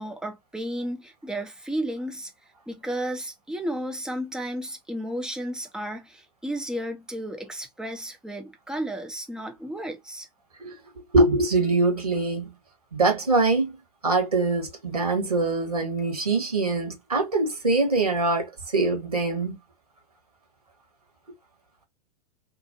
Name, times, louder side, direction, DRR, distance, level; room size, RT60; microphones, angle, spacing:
voice 1, 0.0-2.3 2.7-10.3, right 1 dB, 5° right, 0.5 m, -33 dB
voice 2, 11.1-12.5 12.9-13.8 14.0-19.6, right 2 dB, 80° right, 1.5 m, -23 dB
3.0 x 2.4 x 2.6 m
figure-of-eight pair, 95°, 19 cm